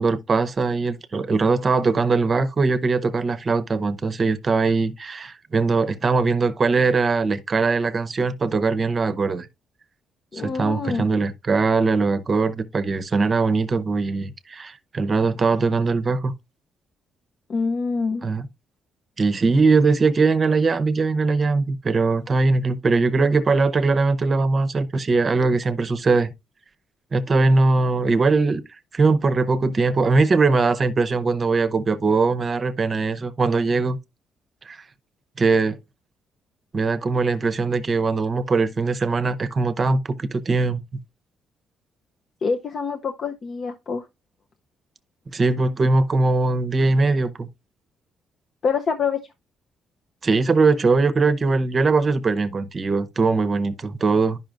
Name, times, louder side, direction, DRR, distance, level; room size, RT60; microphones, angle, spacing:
voice 1, 0.0-9.5 10.3-16.3 18.2-18.5 19.2-26.3 27.1-28.6 28.9-34.0 34.6-34.8 35.4-35.8 36.7-40.8 45.3-47.5 50.2-54.4, right 3 dB, 35° right, 0.7 m, -21 dB
voice 2, 10.3-11.1 17.5-18.2 42.4-44.0 48.6-49.2, left 5 dB, 50° left, 0.6 m, -25 dB
10.5 x 5.6 x 2.5 m
cardioid pair, 90°, 0 cm